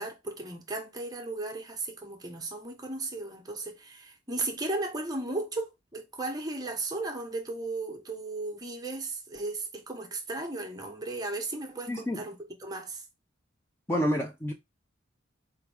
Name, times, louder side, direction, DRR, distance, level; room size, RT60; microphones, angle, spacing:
voice 1, 0.0-13.0, right 2 dB, 20° right, 0.8 m, -35 dB
voice 2, 11.9-12.2 13.9-14.5, equal, 10° left, 0.4 m, -28 dB
4.6 x 2.6 x 3.3 m
head